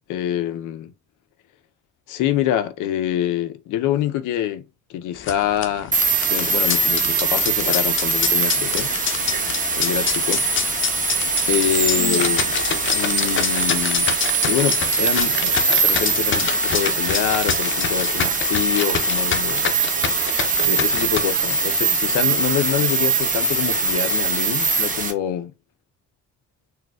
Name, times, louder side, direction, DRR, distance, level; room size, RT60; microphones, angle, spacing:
voice 1, 0.1-0.9 2.1-6.0 6.3-8.9 9.8-10.4 11.5-12.6 12.9-14.2 14.5-19.6 20.6-25.5, left 11 dB, 85° left, 0.5 m, -25 dB
sound 1, 5.1-21.2, left 7 dB, 40° left, 0.5 m, -27 dB
sound 2, 5.9-25.1, right 4 dB, 25° right, 0.9 m, -22 dB
4.2 x 2.3 x 2.2 m
cardioid pair, 90°, 30 cm